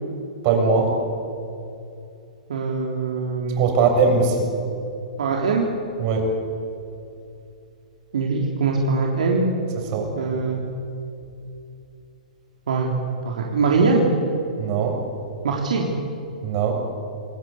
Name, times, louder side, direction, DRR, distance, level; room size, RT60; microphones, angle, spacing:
voice 1, 0.4-1.0 3.6-4.5 6.0-6.3 9.8-10.1 14.6-15.0 16.4-16.7, right 4 dB, 40° right, 3 dB, 7.1 m, -20 dB
voice 2, 2.5-3.6 5.2-5.7 8.1-9.5 10.2-10.6 12.7-12.9 13.2-14.1 15.4-15.9, right 4 dB, 65° right, -1 dB, 3.7 m, -22 dB
29.0 x 21.0 x 8.4 m, 2.7 s
figure-of-eight pair, 110°, 4 cm